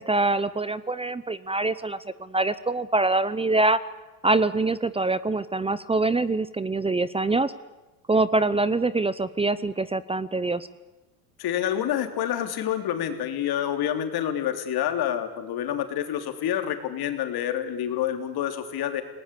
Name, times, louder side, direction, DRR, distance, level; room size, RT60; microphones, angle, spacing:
voice 1, 0.0-3.8 4.2-7.5 8.1-10.7, right 2 dB, 10° right, 17 dB, 0.7 m, -24 dB
voice 2, 11.4-19.0, left 10 dB, 50° left, 6 dB, 3.5 m, -28 dB
28.0 x 19.0 x 8.5 m, 1.1 s
hypercardioid pair, 90°, 49 cm